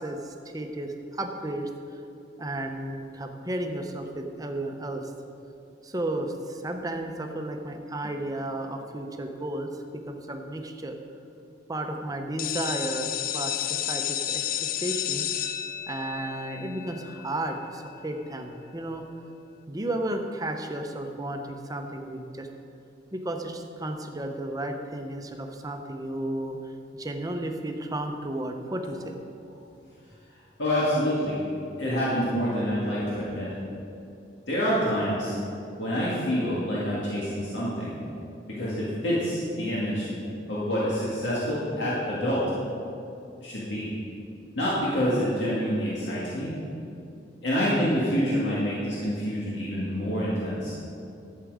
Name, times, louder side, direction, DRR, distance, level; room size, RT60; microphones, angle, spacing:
voice 1, 0.0-1.7 2.4-5.1 5.8-11.0 11.7-14.4 14.8-15.3 15.9-19.0 19.7-22.5 23.1-26.6 26.9-29.2, right 1 dB, 20° right, 5 dB, 0.7 m, -33 dB
sound 1, 12.4-18.0, left 11 dB, 50° left, 0.4 m, -32 dB
voice 2, 30.6-31.4 31.8-33.5 34.5-35.4 35.8-38.0 38.5-40.1 40.5-42.4 43.4-43.9 44.6-46.5 47.4-50.7, equal, 90° left, -8 dB, 1.9 m, -27 dB
11.5 x 7.5 x 4.8 m, 2.7 s
head